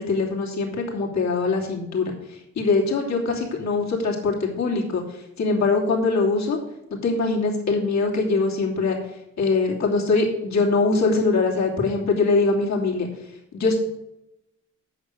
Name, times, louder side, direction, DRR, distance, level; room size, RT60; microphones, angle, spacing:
voice 1, 0.0-6.6 7.0-9.0 9.4-13.1 13.5-13.9, left 3 dB, 60° left, -1 dB, 3.0 m, -22 dB
8.7 x 6.7 x 8.1 m, 0.88 s
wide cardioid pair, 150°, 32 cm